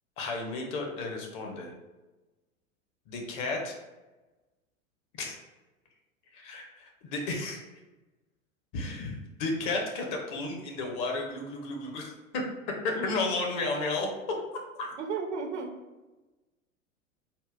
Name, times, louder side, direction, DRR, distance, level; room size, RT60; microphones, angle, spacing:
voice 1, 0.2-1.7 3.1-3.7 5.2-5.4 6.3-7.6 8.7-12.1 12.8-14.1 14.8-14.9, left 3 dB, 40° left, 1 dB, 0.6 m, -33 dB
voice 2, 13.0-13.3 15.0-15.7, right 5 dB, 55° right, 4 dB, 0.5 m, -34 dB
3.6 x 2.1 x 2.5 m, 1.1 s
figure-of-eight pair, 90°, 41 cm